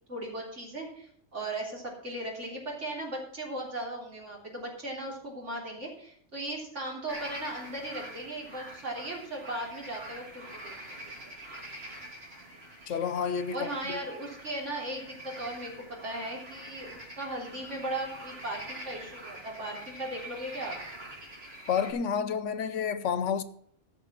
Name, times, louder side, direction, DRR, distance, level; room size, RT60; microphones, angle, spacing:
voice 1, 0.1-11.0 13.5-20.8, right 1 dB, 80° right, 3.7 m, -37 dB
sound 1, 7.1-21.9, right 1 dB, 55° right, 3.2 m, -45 dB
voice 2, 12.9-14.1 21.7-23.4, left 7 dB, 85° left, 1.2 m, -30 dB
15.0 x 6.0 x 5.9 m
omnidirectional pair, 1.2 m